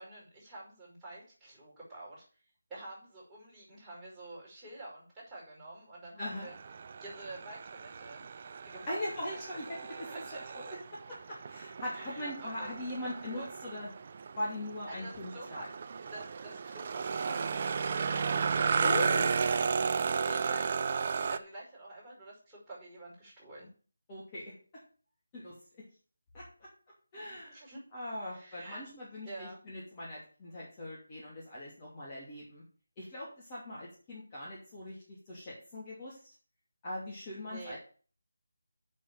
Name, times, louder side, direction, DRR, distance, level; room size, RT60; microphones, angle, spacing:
voice 1, 0.0-2.2 2.7-6.5 7.0-8.2 8.7-9.0 9.3-9.5 10.1-10.5 11.9-12.7 13.0-13.5 14.9-15.7 16.1-18.4 19.3-19.6 20.3-23.7 27.3-27.8 28.2-28.8 29.2-29.6 37.4-37.8, right 2 dB, 5° right, -10 dB, 5.3 m, -48 dB
voice 2, 6.2-6.5 8.9-10.2 10.5-10.8 11.3-13.9 14.3-15.7 18.8-19.4 24.1-24.5 25.3-25.5 26.3-26.7 27.1-27.6 27.9-32.6 33.0-35.0 35.3-36.2 36.8-37.8, left 1 dB, 20° left, -7 dB, 2.7 m, -40 dB
sound 1, 6.3-21.4, right 5 dB, 35° right, 0.5 m, -34 dB
6.7 x 6.5 x 7.5 m, 0.41 s
figure-of-eight pair, 160°, 0 cm